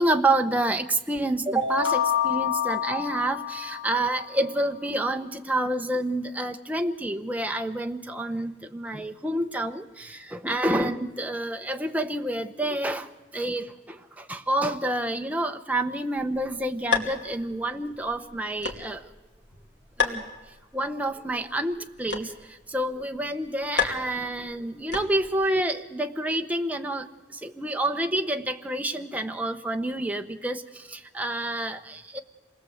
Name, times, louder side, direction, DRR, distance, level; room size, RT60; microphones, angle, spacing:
voice 1, 0.0-19.1 20.0-20.2 20.7-32.2, right 1 dB, 10° right, 5 dB, 0.9 m, -28 dB
sound 1, 1.6-4.4, left 9 dB, 85° left, 1.1 m, -28 dB
sound 2, 16.2-25.5, left 5 dB, 65° left, 2.6 m, -34 dB
27.0 x 20.0 x 7.9 m, 1.1 s
head